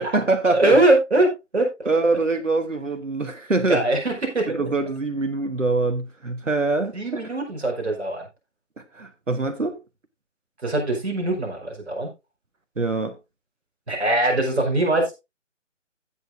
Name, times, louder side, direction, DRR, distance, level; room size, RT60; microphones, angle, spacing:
voice 1, 0.0-0.8 1.8-3.9 4.5-7.2 8.8-9.8 12.8-13.2, right 3 dB, 80° right, 1.4 m, -24 dB
voice 2, 0.5-1.9 3.7-4.6 6.9-8.3 10.6-12.1 13.9-15.1, right 2 dB, 60° right, 5.0 m, -22 dB
15.5 x 6.9 x 2.7 m
figure-of-eight pair, 150°, 37 cm